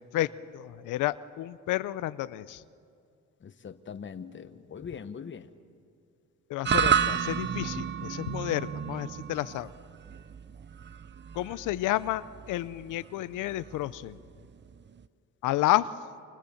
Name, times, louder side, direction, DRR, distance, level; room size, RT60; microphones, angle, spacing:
voice 1, 0.1-2.6 6.5-9.7 11.3-14.2 15.4-15.9, left 15 dB, 90° left, 15 dB, 0.7 m, -30 dB
voice 2, 3.4-5.5, left 6 dB, 40° left, 10 dB, 1.2 m, -41 dB
sound 1, 6.6-15.1, right 8 dB, 35° right, 0.7 m, -32 dB
29.5 x 25.5 x 7.1 m, 2.3 s
cardioid pair, 90°, 30 cm